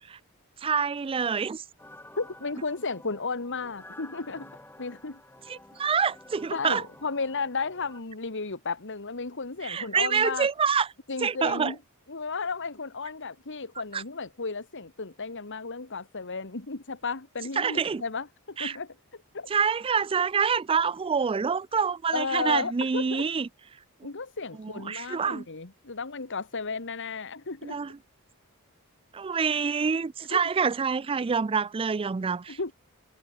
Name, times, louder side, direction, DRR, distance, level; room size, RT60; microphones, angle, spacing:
voice 1, 0.6-1.6 5.5-6.8 9.6-10.9 11.2-11.7 13.9-14.0 17.6-18.0 18.6-18.8 19.5-23.5 24.6-25.4 27.6-27.9 29.1-32.6, right 6 dB, 25° right, 0.4 m, -26 dB
sound 1, 1.8-8.0, left 1 dB, 10° left, 3.9 m, -50 dB
voice 2, 2.2-5.2 6.5-10.5 11.1-11.8 12.1-19.0 19.3-19.5 22.1-23.3 24.0-27.8 30.3-30.4 32.5-32.7, left 4 dB, 60° left, 1.9 m, -34 dB
head